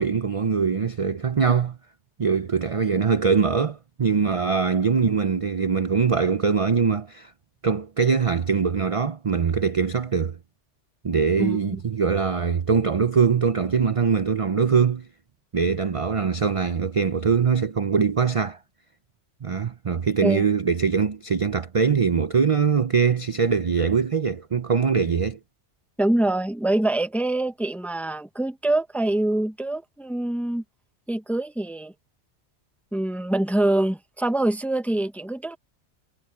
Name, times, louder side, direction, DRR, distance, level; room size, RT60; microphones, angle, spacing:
voice 1, 0.0-1.8 2.2-7.3 7.6-10.4 11.0-15.1 15.5-18.6 19.4-25.4, right 6 dB, 40° right, 0.5 m, -22 dB
voice 2, 11.4-11.8 20.2-20.4 26.0-30.6 31.1-31.9 32.9-35.6, right 1 dB, ahead, 0.8 m, -25 dB
omnidirectional pair, 1.2 m